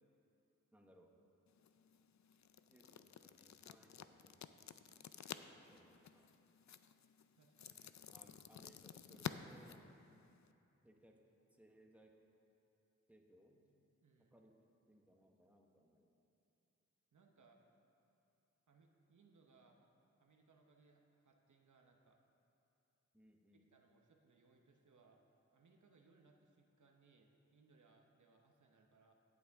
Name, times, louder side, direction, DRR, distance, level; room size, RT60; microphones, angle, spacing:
voice 1, 0.7-1.2 2.7-4.5 5.2-6.3 8.1-9.8 10.8-11.2 11.5-12.2 13.1-13.6 14.3-14.6 14.9-16.1 23.1-23.6, right 1 dB, 5° right, 1 dB, 1.2 m, -67 dB
sound 1, 1.5-10.5, left 8 dB, 70° left, 0.5 m, -52 dB
voice 2, 7.4-7.9 14.0-14.4 17.1-17.6 18.7-19.9 20.2-22.2 23.7-25.2 25.5-29.1, right 4 dB, 80° right, 2 dB, 1.0 m, -70 dB
15.5 x 8.5 x 3.6 m, 2.8 s
cardioid pair, 50°, 30 cm